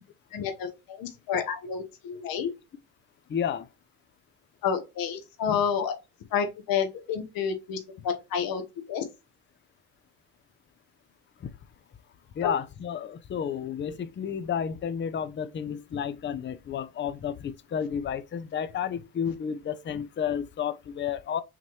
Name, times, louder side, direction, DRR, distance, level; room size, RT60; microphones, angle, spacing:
voice 1, 0.3-2.5 4.6-5.9 6.3-8.6 8.9-9.0 12.4-12.5 15.9-16.0, left 7 dB, 65° left, 1.1 m, -29 dB
voice 2, 3.3-3.6 12.4-21.4, left 8 dB, 30° left, 0.5 m, -31 dB
5.7 x 3.0 x 3.1 m
supercardioid pair, 75°, 38 cm